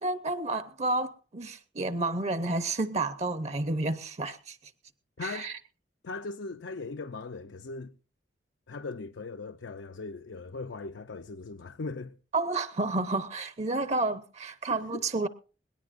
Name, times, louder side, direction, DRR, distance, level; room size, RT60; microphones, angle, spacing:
voice 1, 0.0-4.6 5.2-5.6 12.3-15.3, right 2 dB, 35° right, 0.7 m, -30 dB
voice 2, 5.2-5.5 6.0-8.0 8.7-12.2 14.7-15.0, left 3 dB, 75° left, 0.6 m, -39 dB
21.5 x 18.0 x 2.5 m
head